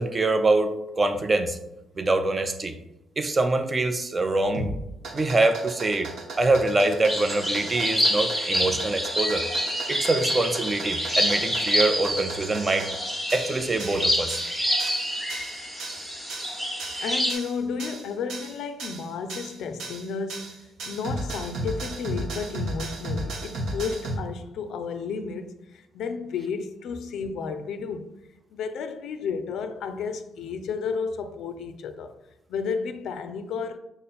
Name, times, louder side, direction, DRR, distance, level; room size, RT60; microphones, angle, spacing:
voice 1, 0.0-1.6 2.0-2.8 3.2-4.8 5.1-9.5 9.9-12.9 13.3-14.4, right 2 dB, 30° right, 0.4 m, -24 dB
sound 1, 4.5-24.2, right 2 dB, 75° right, 0.8 m, -35 dB
sound 2, 7.1-17.3, equal, 5° right, 1.0 m, -27 dB
voice 2, 17.0-28.1 28.5-32.2 32.5-33.8, left 5 dB, 75° left, 0.4 m, -32 dB
5.2 x 2.0 x 4.1 m
cardioid pair, 90°, 0 cm